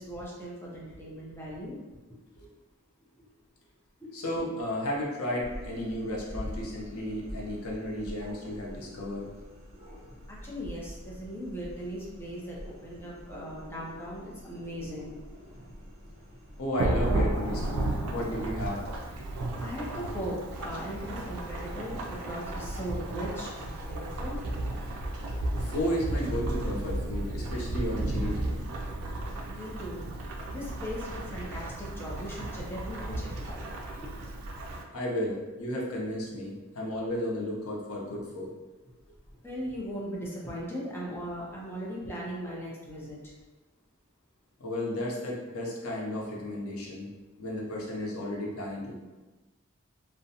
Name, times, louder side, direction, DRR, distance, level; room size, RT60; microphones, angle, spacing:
voice 1, 0.0-1.8 3.2-3.3 4.0-4.1 7.3-7.4 9.7-15.2 15.9-16.4 19.3-24.5 29.5-30.1 30.5-33.7 33.9-34.1 39.4-43.3, equal, 10° left, -5 dB, 0.5 m, -39 dB
voice 2, 4.1-9.3 16.6-18.8 25.6-28.6 34.9-38.5 44.6-47.1 47.4-49.0, left 1 dB, 85° left, -3 dB, 0.6 m, -33 dB
sound 1, 5.4-17.3, equal, 30° right, 1.1 m, -45 dB
Thunderstorm / Rain, 16.8-34.8, right 1 dB, 85° right, 0.4 m, -33 dB
2.5 x 2.1 x 2.7 m, 1.2 s
head